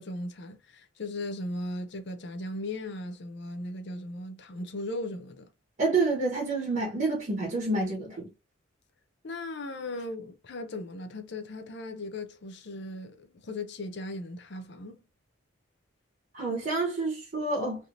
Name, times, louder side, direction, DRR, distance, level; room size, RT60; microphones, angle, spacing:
voice 1, 0.0-5.5 9.2-15.0, left 2 dB, 60° left, 0.5 m, -37 dB
voice 2, 5.8-8.3 16.3-17.9, right 3 dB, 40° right, 1.0 m, -28 dB
3.3 x 2.8 x 2.5 m
head